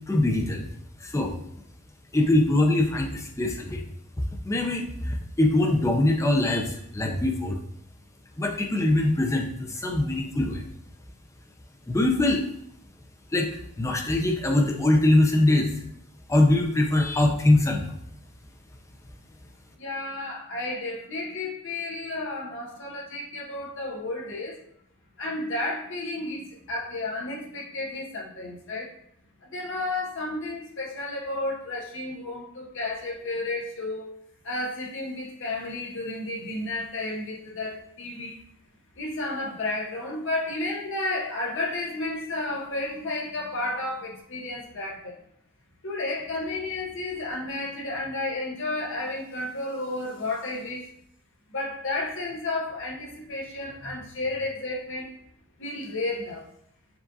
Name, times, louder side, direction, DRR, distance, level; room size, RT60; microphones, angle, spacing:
voice 1, 0.1-0.7 1.0-1.3 2.1-3.9 4.4-7.6 8.4-10.6 11.9-12.4 13.3-15.7 16.3-17.9, left 1 dB, 15° left, 0.5 m, -23 dB
voice 2, 19.8-24.6 25.2-28.9 29.4-34.1 34.4-38.4 39.0-45.2 45.8-50.9 51.5-55.2 55.6-56.5, left 2 dB, 55° left, 0.8 m, -32 dB
6.9 x 2.5 x 2.6 m
head